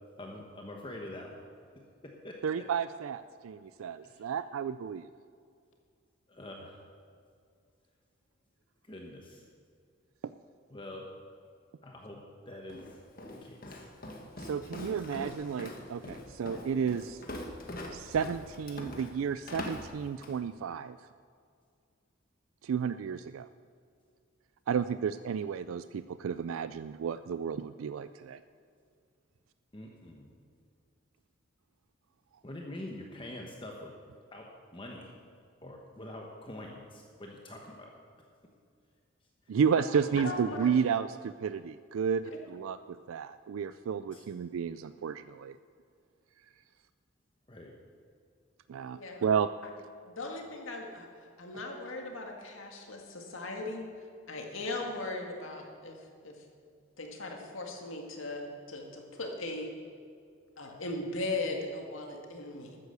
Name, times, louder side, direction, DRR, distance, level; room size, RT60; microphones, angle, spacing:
voice 1, 0.2-1.5 1.7-2.6 4.0-4.3 6.3-6.8 8.8-9.4 10.7-11.1 11.8-13.0 13.3-13.9 14.7-15.1 29.7-30.3 32.4-33.9 34.3-34.5 34.7-35.1 35.6-37.9 39.5-39.6 40.1-40.2 44.1-44.2 47.5-47.7, left 1 dB, 25° left, 0 dB, 1.1 m, -45 dB
voice 2, 2.4-5.1 14.4-17.2 17.9-21.0 22.6-23.5 24.7-28.4 39.5-45.6 48.7-49.5, right 7 dB, 80° right, 13 dB, 0.3 m, -32 dB
Walk footsteps, 12.7-20.4, left 1 dB, 45° left, 1.5 m, -43 dB
voice 3, 40.2-40.8 42.2-42.4 48.9-49.2 50.1-53.9 54.3-56.0 56.2-56.3 57.0-59.7 60.6-62.8, left 2 dB, 75° left, 2 dB, 2.0 m, -38 dB
13.0 x 9.5 x 6.8 m, 2.3 s
head